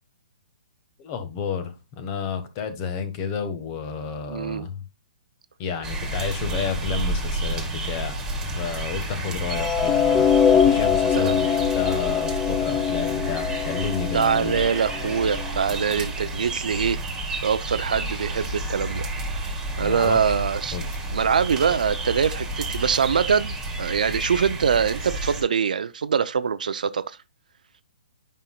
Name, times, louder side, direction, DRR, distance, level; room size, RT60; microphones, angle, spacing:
voice 1, 1.0-4.8 5.6-10.3 10.5-14.6 18.0-18.1 19.8-20.4 20.7-20.9, left 6 dB, 35° left, 1.4 m, -31 dB
voice 2, 4.3-4.7 11.1-11.4 14.1-17.0 17.4-19.1 19.8-20.8 21.1-27.2, right 6 dB, 70° right, 0.6 m, -23 dB
sound 1, 5.8-25.4, right 1 dB, 10° right, 2.2 m, -30 dB
sound 2, 9.5-15.7, left 8 dB, 10° left, 0.5 m, -23 dB
9.1 x 5.6 x 2.3 m
hypercardioid pair, 135°, 4 cm